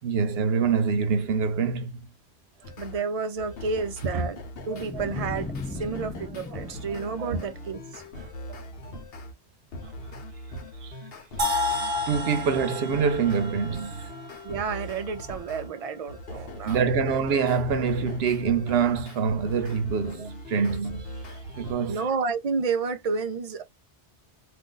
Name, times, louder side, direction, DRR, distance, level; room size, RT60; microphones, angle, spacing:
voice 1, 0.0-2.1 4.1-4.3 10.8-11.0 12.1-14.1 16.6-22.0, right 6 dB, 65° right, 0.9 m, -25 dB
sound 1, 2.6-3.0 3.4-9.3 9.7-15.7 16.1-21.7, left 1 dB, 60° left, 1.0 m, -41 dB
voice 2, 2.8-4.4 4.7-9.0 14.4-17.1 20.2-20.3 21.9-23.6, right 5 dB, 50° right, 0.4 m, -31 dB
sound 2, 4.7-8.0, left 3 dB, 10° left, 0.5 m, -38 dB
sound 3, 11.4-15.3, left 2 dB, 35° right, 0.9 m, -31 dB
2.5 x 2.4 x 3.8 m
omnidirectional pair, 1.2 m